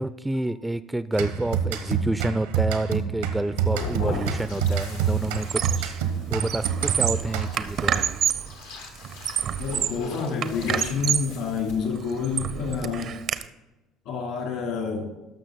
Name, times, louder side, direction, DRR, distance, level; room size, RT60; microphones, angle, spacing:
voice 1, 0.0-8.0, right 1 dB, 10° right, 14 dB, 0.4 m, -29 dB
sound 1, 1.1-7.8, right 7 dB, 85° right, 0.9 m, -28 dB
sound 2, 3.6-11.8, left 3 dB, 85° left, 1.7 m, -39 dB
Squeak, 4.1-4.4 4.7-6.0 6.3-8.5 9.0-10.1 10.4-11.4 11.8-13.4, right 9 dB, 55° right, 0.6 m, -28 dB
voice 2, 9.6-13.1 14.0-15.1, left 5 dB, 70° left, 1 dB, 3.1 m, -28 dB
13.0 x 6.1 x 4.0 m, 1.0 s
hypercardioid pair, 65°, 0 cm